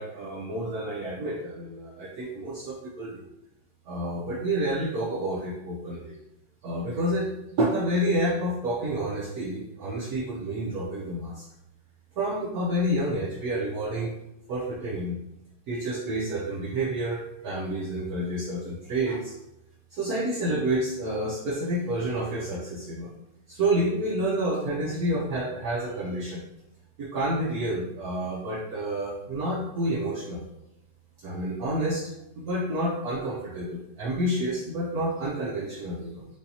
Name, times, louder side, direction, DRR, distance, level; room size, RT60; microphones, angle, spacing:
voice 1, 0.0-3.3 3.9-6.1 6.6-7.3 7.6-11.4 12.2-14.1 14.5-15.2 15.7-19.3 19.9-23.1 23.5-26.4 27.0-30.4 31.2-32.1 32.4-36.3, right 1 dB, 80° right, -3 dB, 0.8 m, -29 dB
6.7 x 2.7 x 2.7 m, 0.85 s
omnidirectional pair, 2.4 m